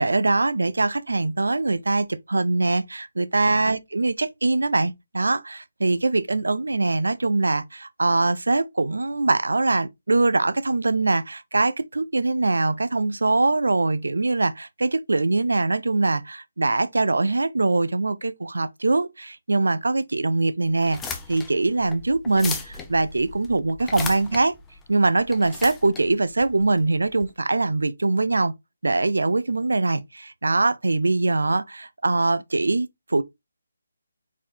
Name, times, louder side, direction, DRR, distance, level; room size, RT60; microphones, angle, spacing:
voice 1, 0.0-21.0 21.3-24.6 24.9-28.5 28.8-33.2, right 3 dB, 90° right, 0.5 m, -23 dB
sound 1, 20.8-27.3, left 5 dB, 10° left, 0.5 m, -36 dB
4.3 x 4.1 x 2.8 m
hypercardioid pair, 165°, 0 cm